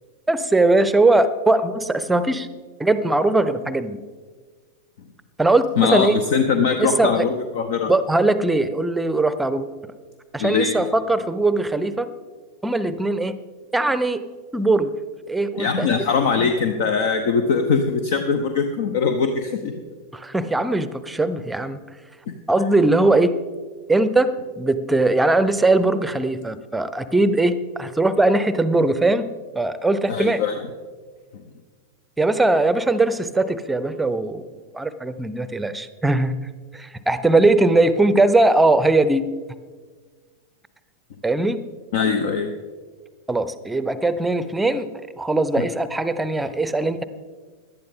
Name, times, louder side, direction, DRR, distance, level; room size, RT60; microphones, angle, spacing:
voice 1, 0.3-2.5 2.8-4.0 5.4-6.2 6.8-7.2 7.9-9.7 10.3-12.1 12.6-13.3 13.7-14.2 14.5-14.9 15.3-15.9 16.4-16.5 20.1-21.8 22.5-23.4 23.9-29.3 29.5-30.4 32.2-34.4 34.7-36.4 36.7-39.2 41.2-41.6 43.3-44.9 45.2-47.0, right 2 dB, 5° right, 13 dB, 0.7 m, -20 dB
voice 2, 5.8-7.9 10.4-10.9 15.6-19.7 22.3-22.4 30.1-30.7 41.9-42.5 45.6-45.7, left 5 dB, 55° left, 7 dB, 0.8 m, -21 dB
17.5 x 11.5 x 3.7 m, 1.5 s
figure-of-eight pair, 90°, 0 cm